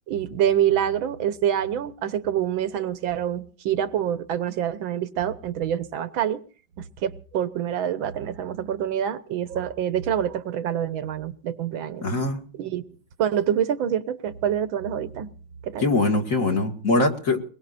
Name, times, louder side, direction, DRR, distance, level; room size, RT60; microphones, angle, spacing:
voice 1, 0.1-6.4 6.8-12.1 12.6-12.8 13.2-15.3 15.6-15.9, right 10 dB, 80° right, 1.8 m, -26 dB
voice 2, 12.0-12.4 15.8-17.4, left 2 dB, 40° left, 2.3 m, -22 dB
23.0 x 21.0 x 2.6 m
omnidirectional pair, 2.1 m